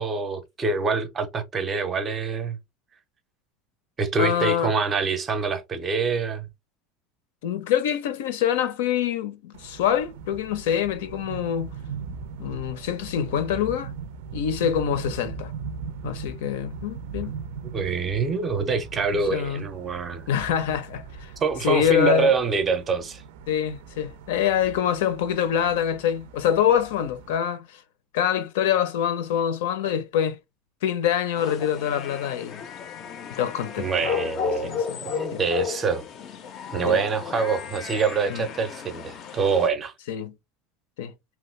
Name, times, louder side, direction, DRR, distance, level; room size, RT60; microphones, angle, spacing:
voice 1, 0.0-2.6 4.0-6.5 17.7-20.2 21.4-23.2 33.8-36.0 36.7-39.9, right 4 dB, 20° right, 0.5 m, -25 dB
voice 2, 4.2-4.7 7.4-11.7 12.4-14.0 14.3-15.5 16.0-17.3 19.3-19.7 20.3-21.3 21.6-22.3 23.5-27.8 28.1-30.4 30.8-32.6 33.3-33.9 34.6-35.0 35.3-35.4 36.8-37.0 38.3-38.5 40.1-40.3 41.0-41.1, left 9 dB, 80° left, 0.6 m, -25 dB
sound 1, 9.5-27.3, right 5 dB, 75° right, 0.4 m, -39 dB
sound 2, 31.4-39.7, left 7 dB, 30° left, 0.4 m, -33 dB
2.9 x 2.3 x 3.1 m
cardioid pair, 175°, 0 cm